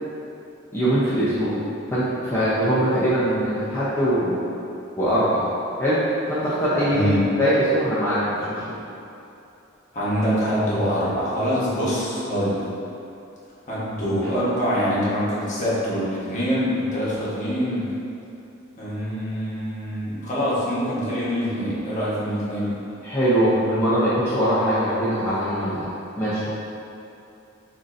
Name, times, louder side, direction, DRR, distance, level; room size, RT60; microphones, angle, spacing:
voice 1, 0.7-1.6 1.9-4.5 5.0-5.4 5.8-6.0 6.3-7.1 7.4-8.6 23.0-25.9 26.2-26.5, equal, 15° left, -12 dB, 0.7 m, -22 dB
voice 2, 6.9-7.2 9.9-12.7 13.7-17.9 18.8-22.7, equal, 40° left, -9 dB, 1.2 m, -24 dB
7.2 x 2.7 x 2.6 m, 2.9 s
head